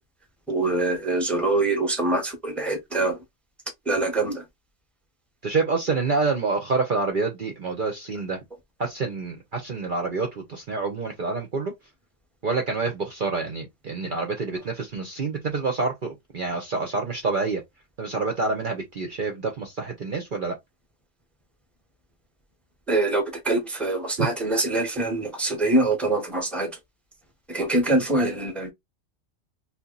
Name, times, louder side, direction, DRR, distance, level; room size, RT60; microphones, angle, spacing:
voice 1, 0.5-3.2 3.9-4.4 22.9-26.7 27.5-28.7, right 2 dB, ahead, 0.9 m, -24 dB
voice 2, 5.4-8.4 8.8-11.7 12.4-17.6 18.0-20.5 24.2-24.3, right 4 dB, 45° right, 0.8 m, -27 dB
2.8 x 2.5 x 3.8 m
omnidirectional pair, 1.3 m